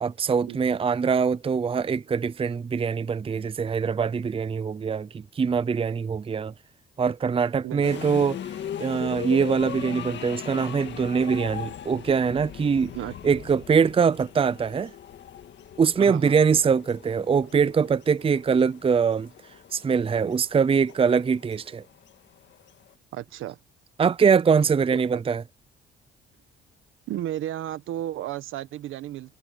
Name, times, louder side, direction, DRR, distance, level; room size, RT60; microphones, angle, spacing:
voice 1, 0.0-6.5 7.0-8.4 8.8-12.9 13.2-14.9 15.8-19.3 19.7-21.8 24.0-25.4, right 6 dB, 30° right, 0.6 m, -23 dB
voice 2, 7.6-8.1 12.9-13.1 16.0-16.4 23.1-23.6 25.1-25.2 27.1-29.3, right 13 dB, 85° right, 1.4 m, -33 dB
sound 1, 7.8-22.9, left 10 dB, 65° left, 1.9 m, -39 dB
cardioid pair, 90°, 20 cm